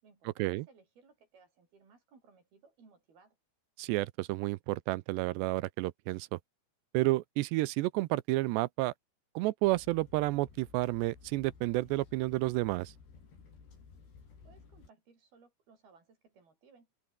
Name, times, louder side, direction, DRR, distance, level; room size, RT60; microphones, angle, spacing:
voice 1, 0.0-3.4 14.4-16.9, right 5 dB, 60° right, 8.0 m, -62 dB
voice 2, 3.8-6.4 6.9-8.9 9.4-12.9, right 19 dB, 85° right, 2.8 m, -31 dB
sound 1, 9.6-14.9, left 5 dB, 70° left, 8.2 m, -56 dB
open air
omnidirectional pair, 5.0 m